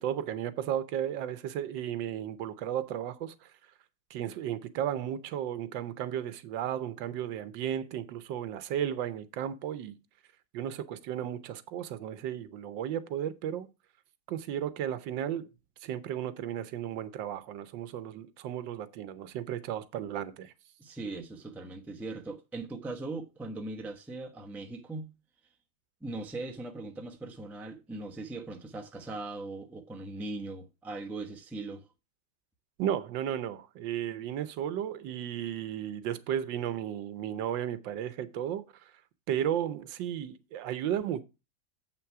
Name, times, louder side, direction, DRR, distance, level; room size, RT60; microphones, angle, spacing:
voice 1, 0.0-3.5 4.1-10.0 10.5-13.7 14.3-15.5 15.8-20.5 32.8-38.7 39.3-41.2, right 10 dB, 80° right, 1.5 m, -34 dB
voice 2, 20.8-25.1 26.0-31.8, right 2 dB, ahead, 0.6 m, -40 dB
7.8 x 6.0 x 4.7 m
omnidirectional pair, 2.0 m